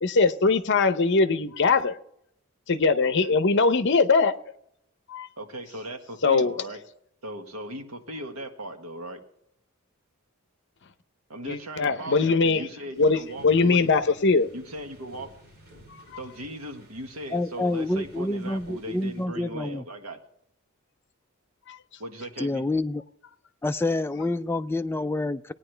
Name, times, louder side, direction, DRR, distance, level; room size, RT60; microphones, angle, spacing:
voice 1, 0.0-2.0 2.7-4.3 5.1-5.3 6.2-6.5 11.4-12.7 13.0-14.5 15.9-16.0 21.7-21.8, left 4 dB, 55° left, 10 dB, 0.7 m, -21 dB
voice 2, 3.0-3.4 5.4-6.8 7.2-9.2 11.3-13.9 14.5-15.3 16.2-20.2 22.0-22.6, right 1 dB, 80° right, 5 dB, 1.5 m, -38 dB
sound 1, 12.9-19.2, right 1 dB, 45° right, 3.8 m, -52 dB
voice 3, 17.3-19.9 22.4-23.0 23.6-25.5, left 2 dB, 10° left, 9 dB, 0.3 m, -28 dB
18.0 x 9.7 x 3.3 m, 0.71 s
head